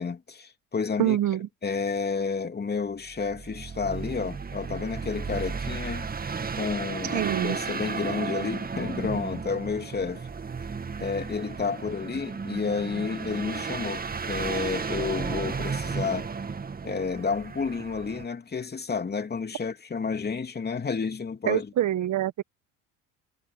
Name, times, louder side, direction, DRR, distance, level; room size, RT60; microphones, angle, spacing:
voice 1, 0.0-1.2 1.6-6.1 6.6-10.3 11.0-16.3 16.8-21.7, left 5 dB, 25° left, 2.9 m, -30 dB
voice 2, 1.0-1.5 7.1-7.6 21.5-22.4, right 12 dB, 50° right, 1.6 m, -25 dB
sound 1, 3.1-18.3, right 5 dB, 25° right, 2.1 m, -34 dB
hypercardioid pair, 70°, 37 cm